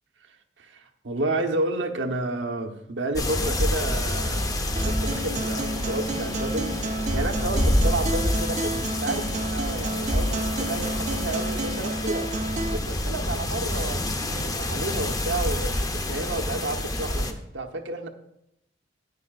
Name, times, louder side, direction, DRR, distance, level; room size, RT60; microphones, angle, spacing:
voice 1, 0.6-6.7 7.1-12.3 12.7-18.1, right 2 dB, 85° right, 4 dB, 1.0 m, -31 dB
sound 1, 3.1-17.3, left 1 dB, 20° left, 0.7 m, -27 dB
sound 2, 3.2-14.1, left 1 dB, 45° left, 3.0 m, -49 dB
Acoustic guitar, 4.8-12.8, right 2 dB, 40° right, 0.5 m, -31 dB
13.5 x 9.6 x 2.4 m, 0.80 s
head